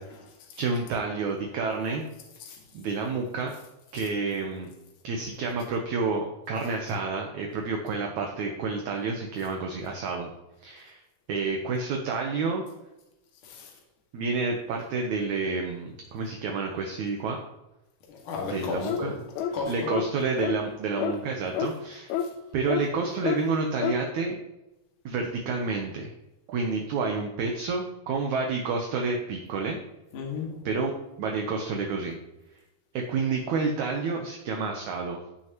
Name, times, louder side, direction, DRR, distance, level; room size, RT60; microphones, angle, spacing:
voice 1, 0.0-0.6 1.5-1.6 2.4-2.6 3.9-4.1 6.6-6.7 13.4-13.7 18.1-20.1 20.4-20.7 22.2-22.3 30.1-30.7, left 5 dB, 60° left, 3.2 m, -36 dB
voice 2, 0.6-2.1 2.7-3.5 3.9-4.7 5.0-10.3 10.6-11.0 11.3-12.6 14.1-17.4 18.4-19.1 19.7-22.1 22.5-24.4 25.0-26.1 26.5-29.8 30.6-30.9 31.2-32.2 32.9-35.2, right 4 dB, 70° right, 1.8 m, -29 dB
sound 1, 18.8-19.1 19.4-19.6 19.9-20.1 20.4-20.6 21.0-21.2 21.5-21.7 22.1-22.3 22.7-22.8 23.2-23.4 23.8-24.0, left 8 dB, 80° left, 2.5 m, -28 dB
14.5 x 6.2 x 3.0 m
omnidirectional pair, 4.4 m